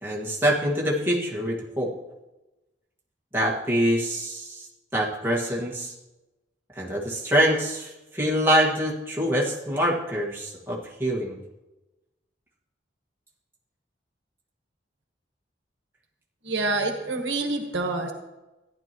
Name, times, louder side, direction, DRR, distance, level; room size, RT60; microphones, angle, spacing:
voice 1, 0.0-1.9 3.3-4.7 4.9-5.9 6.8-11.4, equal, 10° right, -4 dB, 1.7 m, -25 dB
voice 2, 16.4-18.1, right 3 dB, 80° right, 4 dB, 1.3 m, -27 dB
14.5 x 10.5 x 3.0 m, 1.0 s
head